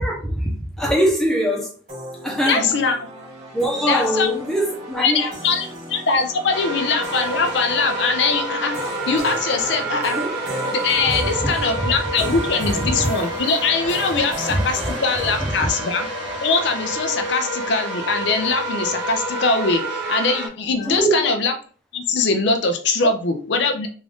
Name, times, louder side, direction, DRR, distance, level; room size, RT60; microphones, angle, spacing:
voice 1, 0.0-1.7 2.2-2.8 3.5-5.3 10.2-10.3 11.1-11.5 11.8-11.9 12.3-13.1 14.5-14.9 15.4-15.5 20.9-21.3, right 1 dB, ahead, 0.8 m, -23 dB
sound 1, 1.9-15.6, right 1 dB, 40° right, 1.9 m, -35 dB
voice 2, 2.5-2.9 3.9-4.3 5.0-10.2 10.7-16.1 16.4-21.5 21.9-23.9, left 4 dB, 70° left, 0.5 m, -22 dB
sound 2, 6.5-20.5, right 1 dB, 90° right, 1.7 m, -28 dB
3.6 x 2.6 x 3.4 m
head